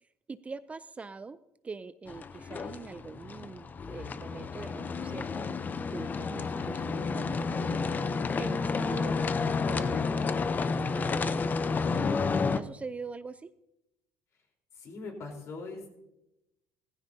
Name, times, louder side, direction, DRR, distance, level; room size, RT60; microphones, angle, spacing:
voice 1, 0.0-1.4 1.6-12.2 12.5-13.5, right 4 dB, 20° right, 14 dB, 0.4 m, -43 dB
sound 1, 2.1-12.6, left 4 dB, 30° left, 0.6 m, -31 dB
voice 2, 14.7-15.9, left 3 dB, 50° left, 2 dB, 3.8 m, -41 dB
15.0 x 15.0 x 2.7 m, 0.90 s
cardioid pair, 110°, 6 cm